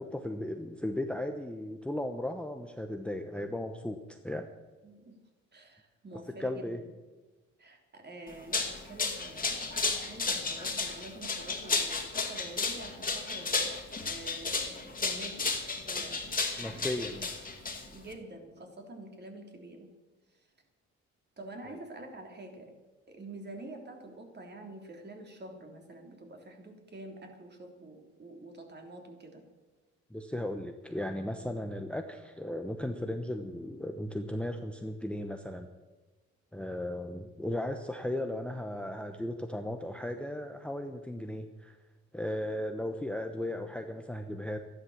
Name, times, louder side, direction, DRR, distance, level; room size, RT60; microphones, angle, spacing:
voice 1, 0.0-4.5 6.4-6.8 16.6-17.3 21.6-21.8 30.1-35.7 36.5-41.8 42.1-44.6, left 1 dB, 5° left, 6 dB, 0.9 m, -36 dB
voice 2, 4.8-5.2 5.5-6.8 7.6-17.2 17.8-19.9 20.3-20.4 21.4-22.7 23.1-29.4, right 2 dB, 35° right, 2 dB, 3.3 m, -47 dB
sound 1, 8.3-18.1, left 4 dB, 30° left, 2.4 m, -33 dB
13.0 x 11.0 x 7.3 m, 1.2 s
cardioid pair, 90°, 30 cm